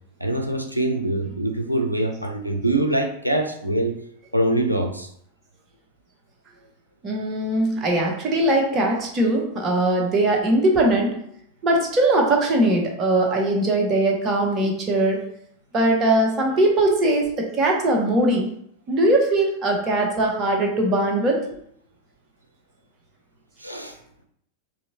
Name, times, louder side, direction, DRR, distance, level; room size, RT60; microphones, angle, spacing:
voice 1, 0.2-4.0 4.3-5.1 23.6-24.0, right 1 dB, 85° right, 4 dB, 0.5 m, -24 dB
voice 2, 7.0-11.2 11.6-15.3 15.7-18.5 18.9-21.4, right 1 dB, 25° right, 0 dB, 1.0 m, -20 dB
4.1 x 2.7 x 2.8 m, 0.68 s
figure-of-eight pair, 90°, 0 cm